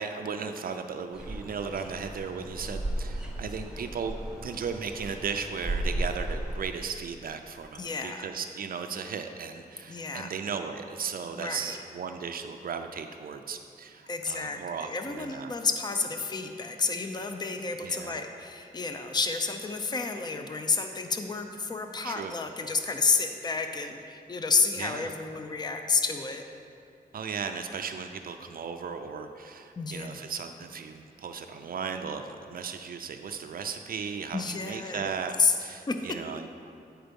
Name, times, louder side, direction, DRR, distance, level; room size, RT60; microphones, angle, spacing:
voice 1, 0.0-4.1 4.4-15.5 17.8-18.2 22.0-22.4 24.8-25.1 27.1-35.3 35.6-36.5, right 6 dB, 65° right, 6 dB, 0.4 m, -36 dB
sound 1, 1.1-6.6, right 1 dB, 5° right, 0.8 m, -35 dB
voice 2, 7.8-8.3 9.9-10.3 11.4-11.8 14.1-26.4 29.8-30.2 34.3-35.1 35.4-35.6 35.9-36.1, left 4 dB, 25° left, 6 dB, 0.5 m, -30 dB
8.9 x 4.5 x 5.2 m, 2.5 s
wide cardioid pair, 115°, 16 cm